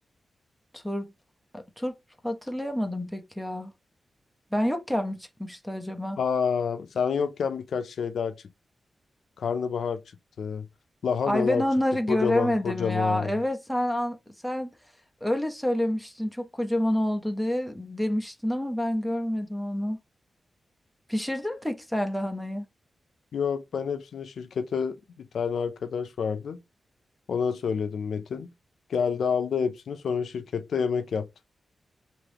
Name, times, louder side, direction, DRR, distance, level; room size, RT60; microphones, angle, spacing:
voice 1, 0.7-1.1 1.5-1.9 2.2-3.7 4.5-6.2 11.2-14.2 14.4-14.7 15.2-20.0 21.1-22.6, left 1 dB, ahead, 0.5 m, -28 dB
voice 2, 6.2-8.3 9.4-10.0 10.4-10.7 11.0-11.6 12.1-13.3 23.3-26.6 27.3-28.5 28.9-31.3, left 6 dB, 80° left, 0.4 m, -28 dB
3.5 x 2.6 x 3.4 m
wide cardioid pair, 165°, 0 cm